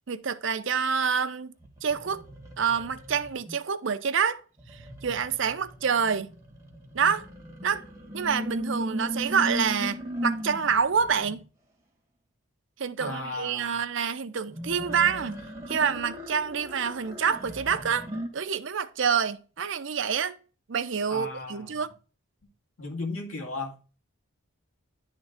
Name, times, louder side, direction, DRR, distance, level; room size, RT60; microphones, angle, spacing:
voice 1, 0.1-1.5 1.8-2.2 2.6-4.4 4.7-6.3 6.9-7.3 7.6-7.8 8.1-11.4 12.8-15.4 15.7-18.1 18.3-20.4 20.7-21.9, right 6 dB, 60° right, 0.6 m, -27 dB
sound 1, 1.6-3.5 4.6-11.4 14.5-18.3, equal, 15° right, 1.6 m, -37 dB
voice 2, 13.0-13.8 21.1-21.8 22.8-24.0, left 3 dB, 90° left, 1.9 m, -36 dB
10.5 x 3.7 x 3.6 m
head